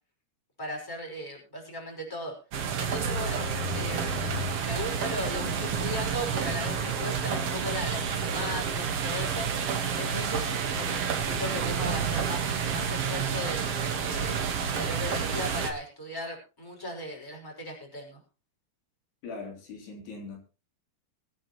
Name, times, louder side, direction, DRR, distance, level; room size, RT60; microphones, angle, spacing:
voice 1, 0.6-2.4 2.8-3.5 3.7-4.3 4.6-9.5 10.0-14.4 14.7-18.2, left 1 dB, 5° left, 0 dB, 5.2 m, -37 dB
sound 1, 2.5-15.7, right 6 dB, 55° right, 1.7 m, -29 dB
voice 2, 19.2-20.5, left 3 dB, 70° left, 0 dB, 5.3 m, -41 dB
23.5 x 9.6 x 3.1 m, 0.34 s
omnidirectional pair, 4.9 m